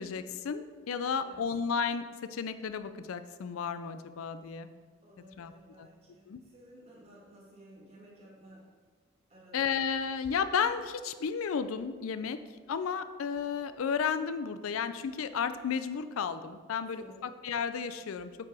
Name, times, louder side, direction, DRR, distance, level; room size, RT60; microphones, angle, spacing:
voice 1, 0.0-4.7 5.4-5.5 5.8-5.9 6.3-6.4 9.5-12.4 12.7-18.3, left 6 dB, 80° left, 11 dB, 0.4 m, -33 dB
voice 2, 5.0-8.6 9.3-9.6 16.9-17.3, right 1 dB, 30° right, -4 dB, 1.9 m, -55 dB
8.5 x 4.7 x 4.8 m, 1.5 s
head